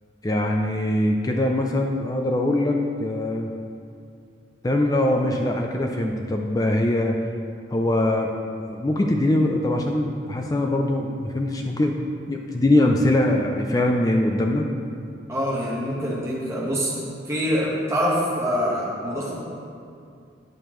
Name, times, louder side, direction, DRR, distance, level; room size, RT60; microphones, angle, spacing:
voice 1, 0.2-3.5 4.6-7.2 7.7-8.3 8.7-12.0 12.3-14.7, left 1 dB, 20° left, 2 dB, 0.3 m, -22 dB
voice 2, 15.3-16.9 17.3-19.3, equal, 15° right, -5 dB, 1.2 m, -25 dB
8.6 x 6.6 x 3.0 m, 2.3 s
head